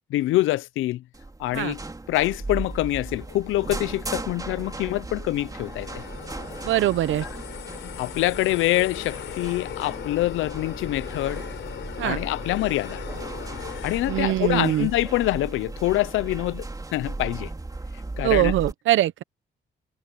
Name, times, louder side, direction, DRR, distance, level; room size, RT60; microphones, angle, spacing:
voice 1, 0.1-1.0 1.4-1.8 2.1-6.0 7.2-7.3 8.0-11.4 12.0-13.0 13.8-16.7 16.9-17.5 18.2-18.5, left 16 dB, 90° left, 0.8 m, -25 dB
sound 1, 1.1-18.7, right 2 dB, 20° right, 3.7 m, -36 dB
sound 2, 5.3-15.1, left 11 dB, 70° left, 4.1 m, -39 dB
voice 2, 6.6-7.2 12.0-12.2 14.1-14.9 18.2-19.2, right 13 dB, 80° right, 1.0 m, -22 dB
cardioid pair, 90°, 20 cm